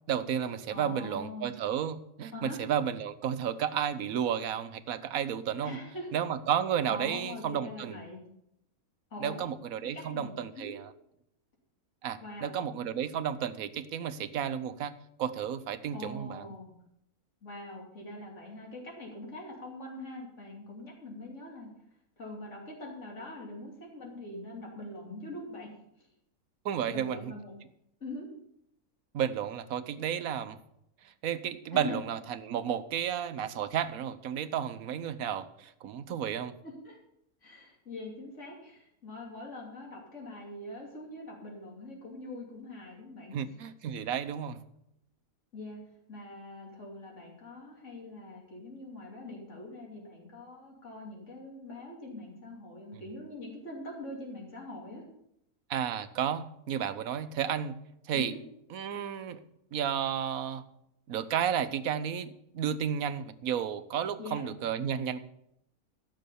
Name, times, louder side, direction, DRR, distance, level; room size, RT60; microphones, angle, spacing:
voice 1, 0.1-5.8 6.1-8.0 9.2-10.9 12.0-14.9 15.2-16.5 26.6-27.3 29.1-30.6 31.2-36.6 43.3-44.6 55.7-57.8 58.1-58.3 58.7-59.4 59.7-60.6 61.1-65.2, right 9 dB, 75° right, 12 dB, 1.2 m, -32 dB
voice 2, 0.7-1.5 2.3-2.6 5.6-6.1 6.9-8.2 9.1-9.4 9.8-10.7 12.2-12.5 15.9-16.7 17.4-21.7 22.2-25.7 26.0-26.1 26.8-27.5 28.0-28.3 31.7-32.0 36.6-37.0 37.4-43.4 45.5-45.8 46.1-55.1 58.1-58.4 64.2-64.5, left 1 dB, 55° left, -1 dB, 3.3 m, -43 dB
14.0 x 6.5 x 7.0 m, 0.77 s
omnidirectional pair, 1.5 m